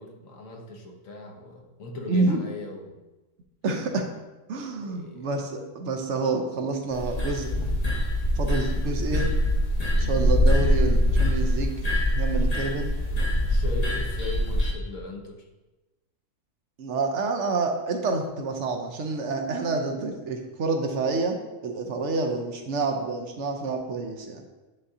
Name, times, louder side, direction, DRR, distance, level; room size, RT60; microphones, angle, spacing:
voice 1, 0.0-3.0 4.8-5.3 9.9-10.2 13.5-15.5, left 2 dB, 75° left, 1 dB, 1.2 m, -39 dB
voice 2, 2.1-2.4 3.6-4.1 4.5-7.7 8.4-9.4 10.0-11.7 12.1-13.0 16.8-24.4, right 3 dB, 65° right, 4 dB, 0.9 m, -28 dB
sound 1, 6.9-14.7, equal, 35° left, 0.7 m, -23 dB
9.6 x 3.7 x 2.7 m, 1.1 s
omnidirectional pair, 1.4 m